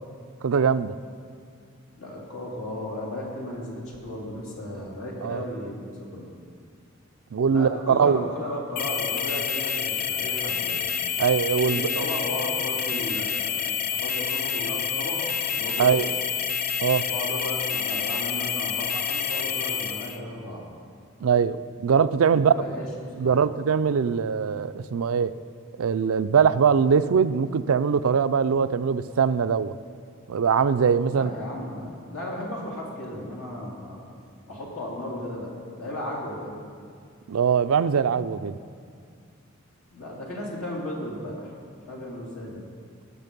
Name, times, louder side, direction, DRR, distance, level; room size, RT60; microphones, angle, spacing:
voice 1, 0.4-0.9 5.2-5.4 7.3-8.3 11.2-12.1 15.8-16.1 16.8-17.0 21.2-22.5 23.2-25.3 25.8-29.7 30.3-31.3 37.3-38.6, right 6 dB, 85° right, 13 dB, 0.4 m, -22 dB
voice 2, 1.9-6.2 7.5-10.8 11.6-16.1 17.1-20.6 22.5-22.8 23.2-23.4 31.1-34.0 34.5-35.5 35.8-36.6 39.9-41.5 41.9-42.6, left 1 dB, 85° left, -4 dB, 2.9 m, -35 dB
sound 1, 8.8-20.2, left 7 dB, 45° left, 0.5 m, -28 dB
18.0 x 6.5 x 5.3 m, 2.2 s
head